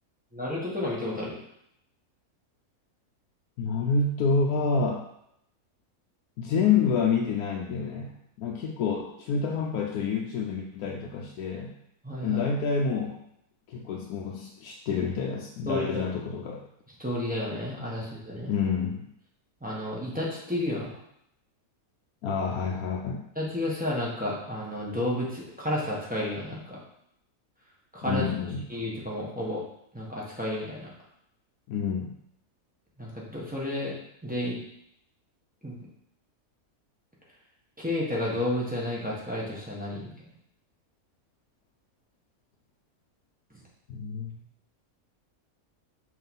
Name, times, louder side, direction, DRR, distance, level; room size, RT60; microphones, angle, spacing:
voice 1, 0.3-1.4 12.0-12.4 15.7-16.1 17.0-18.5 19.6-21.0 23.3-26.8 27.9-28.3 28.7-29.6 29.9-30.9 33.0-33.9 34.2-34.6 35.6-35.8 37.8-40.1, left 1 dB, 5° right, -5 dB, 1.3 m, -31 dB
voice 2, 3.6-5.1 6.4-11.7 12.2-13.2 13.7-16.6 18.5-19.1 22.2-23.3 28.0-28.7 31.7-32.1 43.9-44.4, left 5 dB, 85° left, -1 dB, 1.1 m, -28 dB
5.7 x 3.3 x 5.3 m, 0.77 s
omnidirectional pair, 1.5 m